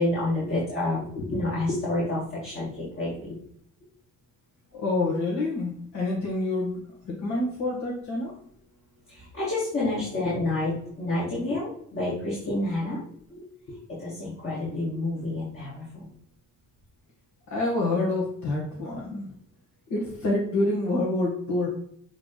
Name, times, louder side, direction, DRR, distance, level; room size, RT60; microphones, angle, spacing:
voice 1, 0.0-1.1 1.3-3.3 9.1-13.0 13.9-16.1, left 2 dB, 45° left, -7 dB, 2.7 m, -29 dB
voice 2, 1.1-1.8 4.7-8.4 11.5-11.6 12.4-12.5 13.3-13.8 17.5-19.4 19.9-21.7, left 2 dB, 70° left, -4 dB, 1.9 m, -28 dB
7.4 x 3.4 x 4.0 m, 0.65 s
cardioid pair, 90°, 30 cm